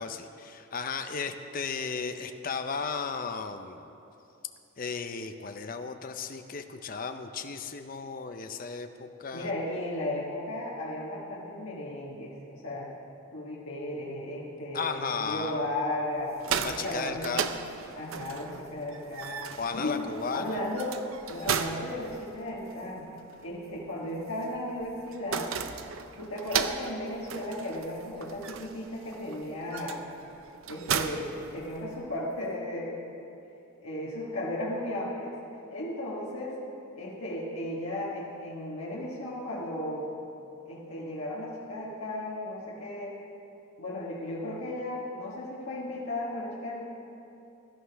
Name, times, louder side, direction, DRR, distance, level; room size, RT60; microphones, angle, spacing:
voice 1, 0.0-3.9 4.8-9.5 14.7-15.7 16.6-17.6 19.6-20.6, left 5 dB, 40° left, 7 dB, 0.5 m, -35 dB
voice 2, 9.3-12.9 13.3-16.4 16.7-17.5 17.9-20.1 20.3-21.0 21.3-23.1 23.4-25.5 26.2-30.0 30.7-33.0 33.8-35.3 35.7-36.6 37.0-40.1 40.6-43.2 43.8-46.8, left 1 dB, 80° left, -6 dB, 1.5 m, -35 dB
sound 1, 16.2-32.2, right 7 dB, 75° right, 0.6 m, -36 dB
16.5 x 11.5 x 3.4 m, 2.8 s
head